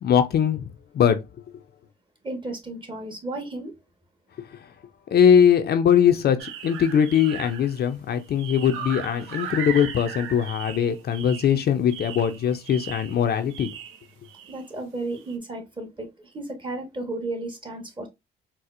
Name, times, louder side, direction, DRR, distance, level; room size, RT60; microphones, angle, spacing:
voice 1, 0.0-0.7 0.9-1.2 4.4-4.6 5.1-13.7, left 8 dB, 55° left, 0.5 m, -21 dB
voice 2, 2.2-3.7 14.5-18.1, right 2 dB, 25° right, 1.1 m, -33 dB
sound 1, 6.4-7.9 8.1-14.7 15.1-15.3, right 8 dB, 90° right, 0.5 m, -38 dB
4.2 x 2.0 x 2.4 m
cardioid pair, 90°, 20 cm